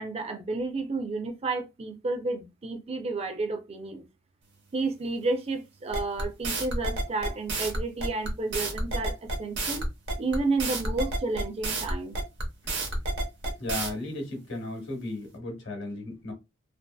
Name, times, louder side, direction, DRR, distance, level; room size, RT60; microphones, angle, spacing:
voice 1, 0.0-4.0 4.7-9.8 10.2-12.2, right 3 dB, 30° right, 0.5 m, -31 dB
sound 1, 5.9-13.9, right 2 dB, 60° right, 0.8 m, -30 dB
voice 2, 13.6-16.3, left 1 dB, 60° left, 1.0 m, -35 dB
2.6 x 2.5 x 2.2 m
head